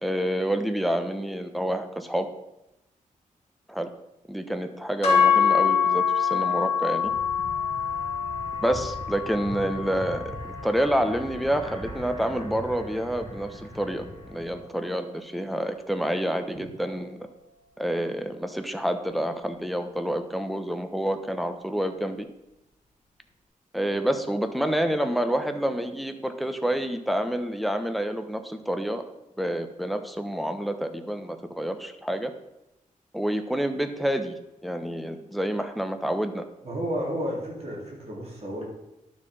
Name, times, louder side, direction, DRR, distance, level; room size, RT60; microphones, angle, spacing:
voice 1, 0.0-2.3 3.7-3.9 4.3-7.1 8.6-17.2 17.8-22.3 23.7-29.0 29.4-32.3 33.1-36.4, equal, ahead, 7 dB, 1.0 m, -28 dB
sound 1, 5.0-13.3, left 7 dB, 55° left, 3.2 m, -26 dB
sound 2, 7.0-14.6, equal, 35° right, 3.1 m, -41 dB
voice 2, 36.6-38.7, equal, 50° right, -3 dB, 4.0 m, -31 dB
11.5 x 6.5 x 5.5 m, 0.92 s
wide cardioid pair, 115°, 14 cm